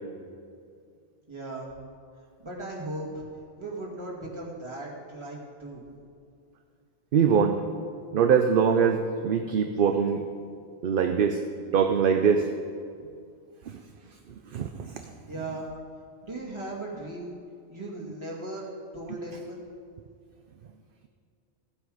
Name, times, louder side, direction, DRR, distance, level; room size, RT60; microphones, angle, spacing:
voice 1, 1.3-1.7 2.4-3.2 3.6-5.8 15.3-15.7 16.2-17.3 17.7-18.7 18.9-19.6, right 2 dB, 25° right, -5 dB, 2.3 m, -37 dB
voice 2, 7.1-7.6 8.1-10.2 10.8-11.4 11.7-12.5 13.7-13.8 14.5-14.9, right 7 dB, 55° right, 6 dB, 0.7 m, -22 dB
15.5 x 8.1 x 5.0 m, 2.4 s
omnidirectional pair, 1.2 m